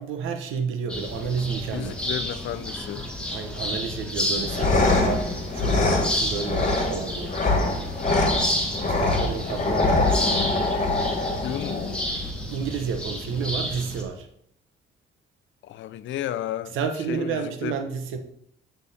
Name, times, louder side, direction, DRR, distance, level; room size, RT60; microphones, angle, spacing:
voice 1, 0.0-2.0 3.3-7.4 8.9-10.3 12.5-14.3 16.7-18.2, right 6 dB, 85° right, 0.9 m, -30 dB
sound 1, 0.9-14.0, left 1 dB, 5° left, 1.3 m, -31 dB
voice 2, 1.7-3.0 11.4-12.0 15.6-16.8 17.1-17.8, left 12 dB, 75° left, 0.5 m, -32 dB
sound 2, 4.3-12.3, left 2 dB, 40° left, 1.6 m, -24 dB
8.4 x 3.5 x 4.1 m
cardioid pair, 90°, 20 cm